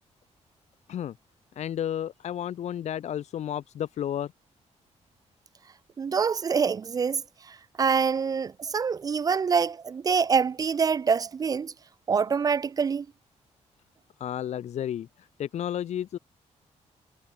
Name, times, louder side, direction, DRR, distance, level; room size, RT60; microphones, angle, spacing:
voice 1, 1.6-4.3 14.2-16.2, left 10 dB, 70° left, 1.2 m, -32 dB
voice 2, 6.0-11.7 12.1-13.1, right 6 dB, 30° right, 0.3 m, -25 dB
wide cardioid pair, 140°, 12 cm